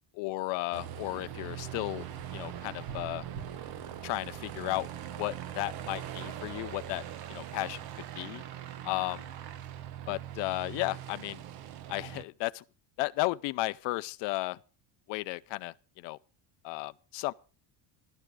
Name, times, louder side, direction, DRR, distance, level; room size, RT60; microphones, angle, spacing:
voice 1, 0.1-2.0 2.3-3.2 4.0-4.9 5.2-7.0 7.3-7.8 8.2-8.4 8.8-9.3 10.1-11.4 11.9-12.6 13.0-14.6 15.1-16.2 16.6-17.3, left 20 dB, 70° left, 0.6 m, -34 dB
Aircraft, 0.7-12.2, right 11 dB, 50° right, 1.1 m, -41 dB
sound 1, 1.0-7.0, left 4 dB, 10° left, 0.6 m, -56 dB
13.5 x 12.5 x 4.8 m
cardioid pair, 160°, 46 cm